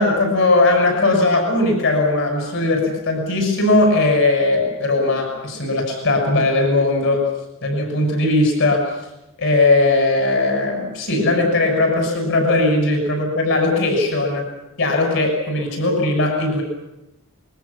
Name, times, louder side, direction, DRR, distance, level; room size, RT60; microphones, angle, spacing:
voice 1, 0.0-7.3 7.6-9.0 9.4-14.4 14.8-16.6, left 2 dB, 60° left, 3 dB, 6.3 m, -18 dB
26.0 x 22.0 x 7.1 m, 0.93 s
head